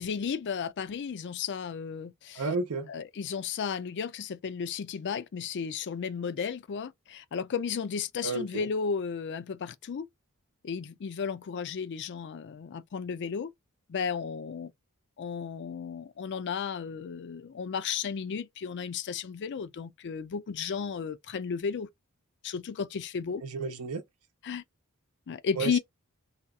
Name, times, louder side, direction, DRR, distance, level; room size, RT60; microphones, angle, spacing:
voice 1, 0.0-2.5 2.9-10.1 10.6-13.5 13.9-14.7 15.2-21.9 22.4-23.4 24.4-24.6 25.3-25.8, left 6 dB, 50° left, 0.4 m, -34 dB
voice 2, 2.4-2.9 8.2-8.7 23.4-24.0 25.6-25.8, right 3 dB, 80° right, 0.7 m, -32 dB
2.8 x 2.3 x 3.4 m
head